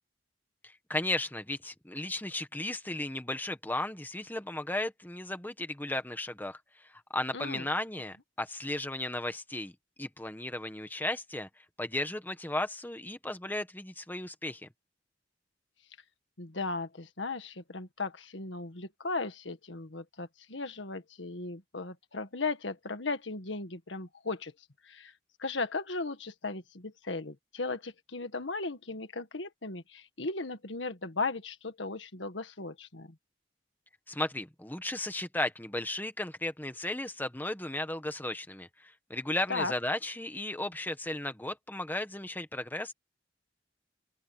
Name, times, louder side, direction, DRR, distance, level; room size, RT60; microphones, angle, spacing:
voice 1, 0.9-6.6 7.1-9.7 10.0-11.5 11.8-14.7 34.1-42.9, left 1 dB, 10° left, 1.5 m, -35 dB
voice 2, 7.3-7.7 16.4-24.5 24.8-25.1 25.4-33.2 39.5-39.7, left 3 dB, 80° left, 1.8 m, -36 dB
open air
head